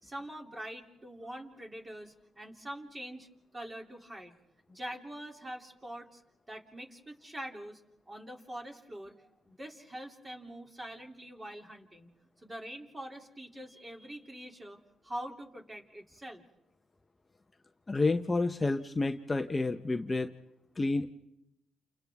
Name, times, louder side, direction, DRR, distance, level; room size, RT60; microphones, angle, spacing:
voice 1, 0.0-3.3 3.5-4.3 4.7-6.2 6.5-12.1 12.4-16.4, right 1 dB, 20° right, 2 dB, 3.0 m, -44 dB
voice 2, 17.9-20.3 20.8-21.1, left 3 dB, 25° left, 6 dB, 0.9 m, -29 dB
29.5 x 29.0 x 3.6 m, 0.86 s
cardioid pair, 90°, 0 cm